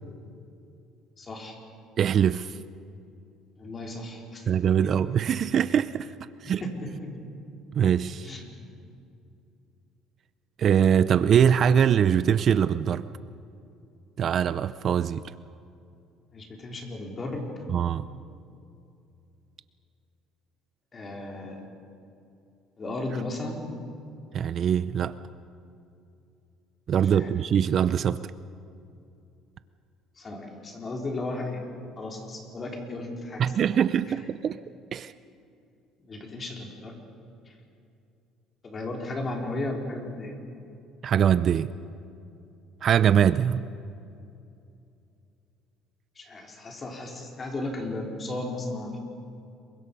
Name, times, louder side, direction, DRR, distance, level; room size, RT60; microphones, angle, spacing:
voice 1, 1.2-1.6 3.6-4.5 6.4-7.1 8.2-8.5 16.3-17.5 20.9-21.7 22.8-23.6 27.1-27.3 30.2-31.6 32.0-33.8 36.1-37.0 37.5-37.6 38.6-40.4 46.2-49.0, left 2 dB, 30° left, 1 dB, 4.0 m, -35 dB
voice 2, 2.0-2.6 4.5-6.1 6.4-6.6 7.8-8.3 10.6-13.1 14.2-15.2 17.7-18.0 24.3-25.2 26.9-28.2 33.4-34.6 34.9-35.1 41.0-41.7 42.8-43.7, right 8 dB, 45° right, 15 dB, 0.5 m, -22 dB
28.0 x 23.5 x 5.4 m, 2.6 s
cardioid pair, 125°, 0 cm